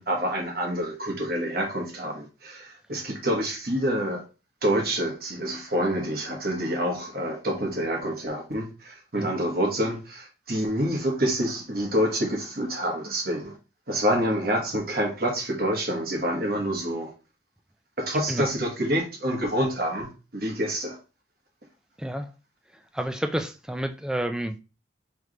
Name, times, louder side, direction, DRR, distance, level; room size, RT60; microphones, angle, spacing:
voice 1, 0.0-4.2 4.6-13.5 13.9-17.1 18.0-21.0, equal, 55° right, 1.2 m, -27 dB
voice 2, 22.9-24.6, right 1 dB, 5° right, 0.3 m, -30 dB
3.3 x 3.1 x 3.8 m
head